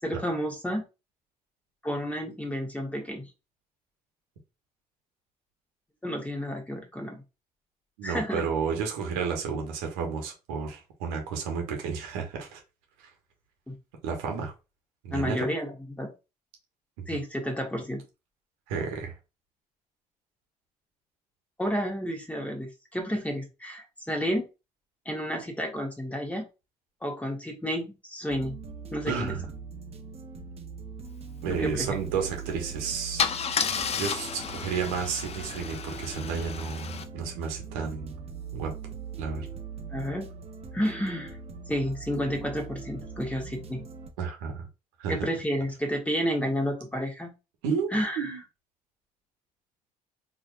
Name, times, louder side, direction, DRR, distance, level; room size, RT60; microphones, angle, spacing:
voice 1, 0.0-0.8 1.8-3.3 6.0-7.2 8.0-8.4 13.7-13.8 15.1-16.1 17.1-18.0 21.6-24.4 25.0-26.4 27.0-28.5 28.9-29.3 31.5-31.9 39.9-40.3 40.7-41.4 41.7-43.8 45.1-47.3 47.9-48.4, equal, 5° left, 1.4 m, -31 dB
voice 2, 8.0-12.6 13.0-13.1 14.0-14.5 15.0-15.4 18.7-19.1 29.1-29.4 31.4-33.7 33.9-38.2 38.5-38.7 39.2-39.5 44.2-44.7 45.0-45.1 47.6-48.4, right 6 dB, 70° right, 1.2 m, -32 dB
sound 1, 28.3-44.1, right 5 dB, 30° right, 0.8 m, -41 dB
Car / Engine starting / Idling, 32.5-32.7 33.2-37.0, left 6 dB, 30° left, 0.5 m, -32 dB
4.8 x 2.8 x 2.6 m
figure-of-eight pair, 50°, 19 cm